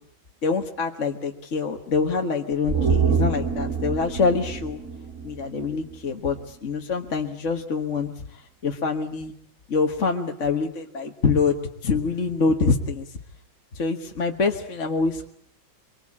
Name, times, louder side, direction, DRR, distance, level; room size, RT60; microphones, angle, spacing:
voice 1, 0.4-4.8 5.2-8.1 8.6-9.3 9.7-11.5 11.8-13.1 13.7-15.3, left 4 dB, 40° left, 3 dB, 1.6 m, -25 dB
sound 1, 2.7-6.1 6.4-6.5, right 5 dB, 45° right, 3.9 m, -26 dB
25.0 x 23.5 x 8.7 m, 0.68 s
omnidirectional pair, 2.1 m